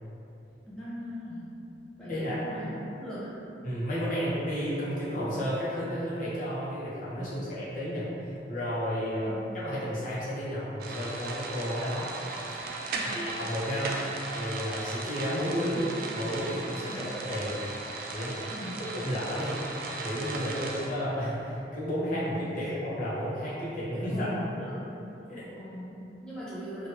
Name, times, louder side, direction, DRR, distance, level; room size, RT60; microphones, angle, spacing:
voice 1, 0.7-1.5 2.0-3.5 7.2-7.5 9.2-9.7 12.9-13.3 16.9-17.0 18.5-18.8 20.4-20.8 22.4-22.7 24.1-24.9 25.6-26.9, equal, 5° left, -12 dB, 0.5 m, -41 dB
voice 2, 2.1-2.4 3.6-9.4 9.6-12.1 13.0-15.8 16.1-17.6 18.1-18.4 19.0-19.5 20.0-24.3 25.3-25.5, equal, 50° left, -10 dB, 0.9 m, -32 dB
sound 1, 10.8-20.9, right 3 dB, 55° right, 0.3 m, -37 dB
3.0 x 2.5 x 2.9 m, 2.9 s
head